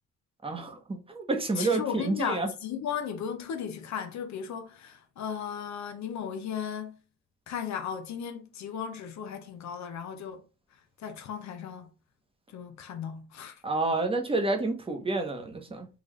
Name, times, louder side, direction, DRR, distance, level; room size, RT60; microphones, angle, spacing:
voice 1, 0.4-2.5 13.6-15.9, right 3 dB, 20° right, 0.9 m, -29 dB
voice 2, 1.6-7.0 7.5-10.4 11.0-11.9 12.5-13.6, left 7 dB, 65° left, 0.6 m, -36 dB
3.9 x 2.4 x 3.1 m
cardioid pair, 90°, 30 cm